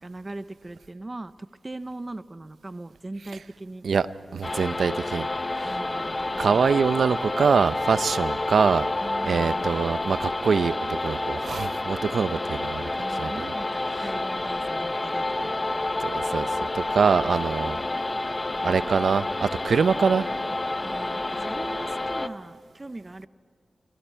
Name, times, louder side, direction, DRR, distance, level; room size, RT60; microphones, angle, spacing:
voice 1, 0.0-3.9 5.6-6.6 9.0-10.0 13.0-15.6 20.8-23.3, right 2 dB, 20° right, 14 dB, 0.5 m, -40 dB
voice 2, 4.3-5.3 5.6-5.8 6.4-8.9 9.2-12.8 13.1-13.5 13.9-14.1 16.0-16.5 16.7-17.8 18.6-20.3, right 5 dB, 80° right, 14 dB, 0.6 m, -24 dB
sound 1, 4.4-22.3, left 2 dB, 25° left, 0.7 m, -29 dB
28.5 x 24.5 x 4.5 m, 2.3 s
wide cardioid pair, 150°, 0 cm